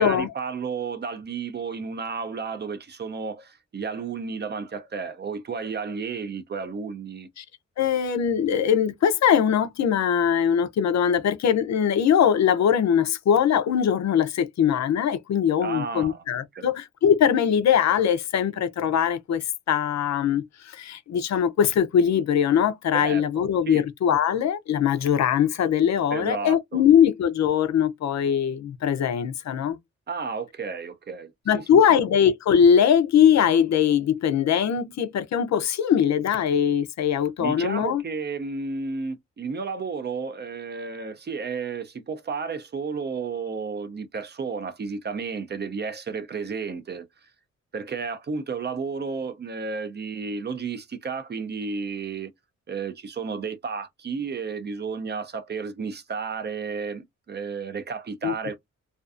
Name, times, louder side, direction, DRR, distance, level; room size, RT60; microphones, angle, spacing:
voice 1, 0.0-7.3 15.6-16.2 16.5-16.7 22.9-23.8 26.1-26.8 30.1-31.8 37.4-47.1 47.7-52.3 52.7-58.6, right 5 dB, 35° right, 0.4 m, -32 dB
voice 2, 7.8-29.8 31.5-38.0 58.2-58.3, left 8 dB, 70° left, 0.5 m, -21 dB
2.5 x 2.3 x 2.4 m
wide cardioid pair, 140°, 29 cm